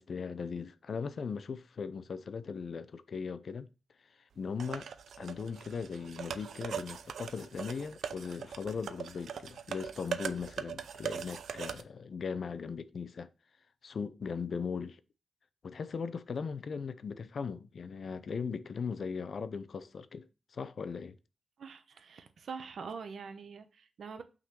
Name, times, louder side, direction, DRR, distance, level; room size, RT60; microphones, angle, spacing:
voice 1, 0.0-3.7 4.4-4.9 5.2-13.3 13.8-15.0 15.6-21.2, left 5 dB, 60° left, 0.5 m, -38 dB
sound 1, 4.6-11.8, right 7 dB, 85° right, 0.5 m, -41 dB
voice 2, 21.6-24.2, right 5 dB, 70° right, 0.9 m, -44 dB
5.8 x 3.9 x 5.9 m
wide cardioid pair, 110°, 0 cm